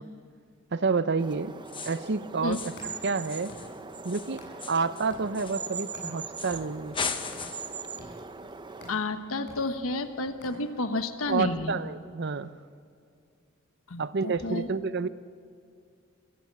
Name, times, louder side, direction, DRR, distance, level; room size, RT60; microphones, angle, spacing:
voice 1, 0.7-1.5 1.9-2.8 3.0-3.5 4.0-4.4 4.7-7.0 11.3-12.5 14.0-15.1, right 4 dB, 55° right, 14 dB, 0.7 m, -29 dB
sound 1, 1.2-8.9, right 5 dB, 20° right, 0.7 m, -41 dB
sound 2, 1.7-2.1 2.5-2.9 3.2-5.9 6.4-6.6 6.9-7.8, left 5 dB, 25° left, 1.0 m, -37 dB
sound 3, 2.5-4.8 5.1-11.0, equal, 55° left, 7.8 m, -50 dB
voice 2, 8.9-11.8 13.9-14.7, left 2 dB, 80° left, 8 dB, 1.2 m, -31 dB
23.5 x 16.0 x 8.7 m, 2.3 s
head